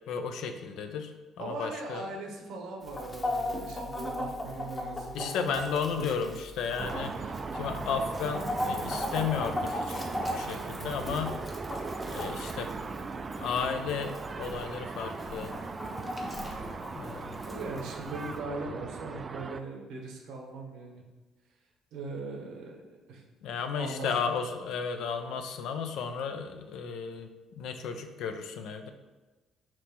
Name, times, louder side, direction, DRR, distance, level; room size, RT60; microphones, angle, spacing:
voice 1, 0.1-2.1 5.1-11.3 12.0-12.7 13.4-15.5 16.9-17.4 23.4-27.3 27.6-28.9, left 6 dB, 65° left, 7 dB, 0.4 m, -34 dB
voice 2, 1.4-6.3 17.4-21.0 21.9-23.2 23.8-24.1, right 3 dB, 70° right, 0 dB, 0.8 m, -40 dB
Chicken rooster, 2.8-18.4, left 1 dB, 30° left, 1.0 m, -38 dB
sound 1, 6.8-19.6, right 4 dB, 35° right, 0.3 m, -38 dB
5.8 x 3.0 x 2.9 m, 1.2 s
hypercardioid pair, 50°, 0 cm